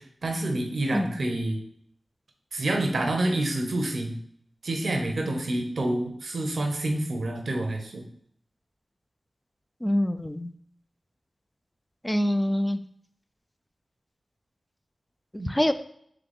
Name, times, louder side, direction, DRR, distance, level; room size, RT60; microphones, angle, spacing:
voice 1, 0.0-1.6 2.5-4.2 4.6-8.0 15.4-15.5, right 1 dB, 75° right, 3 dB, 0.7 m, -28 dB
voice 2, 9.8-10.5 12.0-12.8 15.5-15.7, left 1 dB, 15° left, 9 dB, 0.3 m, -25 dB
3.9 x 3.3 x 3.5 m, 0.66 s
wide cardioid pair, 65°, 0 cm